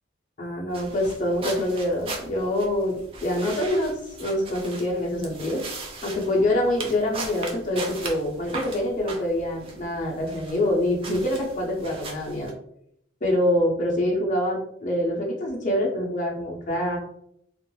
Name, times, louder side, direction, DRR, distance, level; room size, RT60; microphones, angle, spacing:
voice 1, 0.4-5.6 6.0-12.5 13.2-17.0, left 1 dB, 40° left, -3 dB, 0.7 m, -25 dB
sound 1, 0.7-12.5, right 3 dB, 30° right, 0.4 m, -39 dB
2.3 x 2.0 x 3.0 m, 0.73 s
head